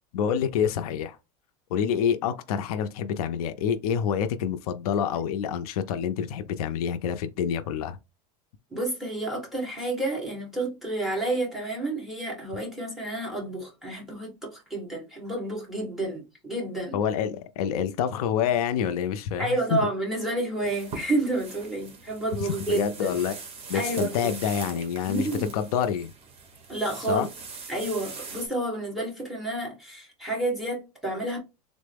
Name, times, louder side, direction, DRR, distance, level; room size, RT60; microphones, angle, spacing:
voice 1, 0.1-1.2 1.7-8.0 16.9-19.8 22.4-23.4 23.7-26.1 27.1-27.3, left 8 dB, 80° left, 0.5 m, -27 dB
voice 2, 8.7-17.0 19.4-23.1 23.7-24.3 25.1-25.5 26.7-27.3 27.7-31.4, right 2 dB, ahead, 1.4 m, -30 dB
sound 1, 20.6-28.5, right 4 dB, 30° right, 1.2 m, -42 dB
3.6 x 2.0 x 3.3 m
supercardioid pair, 135°, 19 cm